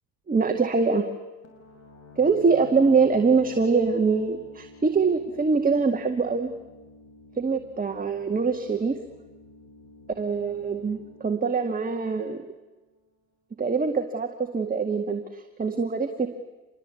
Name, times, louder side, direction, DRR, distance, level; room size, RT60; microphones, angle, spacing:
voice 1, 0.3-1.1 2.2-6.5 7.4-9.0 10.2-12.4 13.6-16.3, right 4 dB, 25° right, 5 dB, 2.0 m, -24 dB
sound 1, 1.4-13.0, left 3 dB, 50° left, 7.3 m, -50 dB
26.5 x 21.0 x 8.5 m, 1.2 s
supercardioid pair, 80°, 34 cm